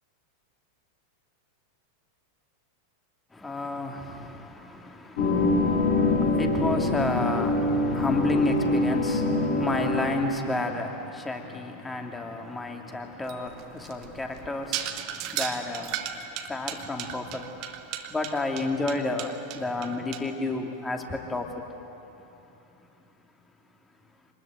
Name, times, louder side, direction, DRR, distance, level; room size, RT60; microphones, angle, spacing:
voice 1, 3.3-16.1 16.5-17.5 18.1-21.5, left 2 dB, 10° left, 3 dB, 2.6 m, -31 dB
sound 1, 5.2-10.3, left 2 dB, 55° left, 5.8 m, -24 dB
sound 2, 13.3-20.2, right 11 dB, 40° right, 1.4 m, -35 dB
26.5 x 20.5 x 9.3 m, 2.9 s
figure-of-eight pair, 90°, 0 cm